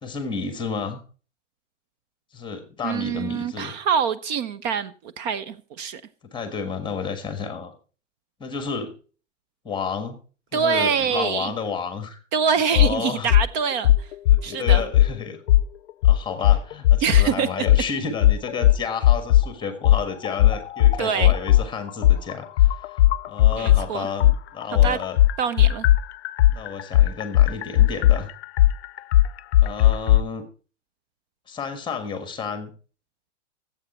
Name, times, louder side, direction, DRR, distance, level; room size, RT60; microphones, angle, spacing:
voice 1, 0.0-1.0 2.3-3.7 6.3-7.7 8.4-8.9 9.6-10.2 10.5-12.2 12.7-13.3 14.3-15.4 16.0-23.0 23.3-25.2 26.5-28.3 29.6-30.5 31.5-32.7, left 5 dB, 15° left, 1.5 m, -31 dB
voice 2, 2.8-6.0 10.5-11.5 12.3-14.1 14.4-14.8 17.0-17.7 21.0-21.3 23.5-24.1 24.7-25.0 25.4-25.9, right 6 dB, 40° right, 0.7 m, -25 dB
sound 1, 12.7-12.9 13.3-13.5 13.8-15.1 15.5-15.7 16.0-17.3 17.7-17.8 18.2-19.5 19.8-23.8 24.2-30.2, left 13 dB, 60° left, 0.5 m, -16 dB
16.5 x 8.1 x 4.3 m
hypercardioid pair, 140°, 36 cm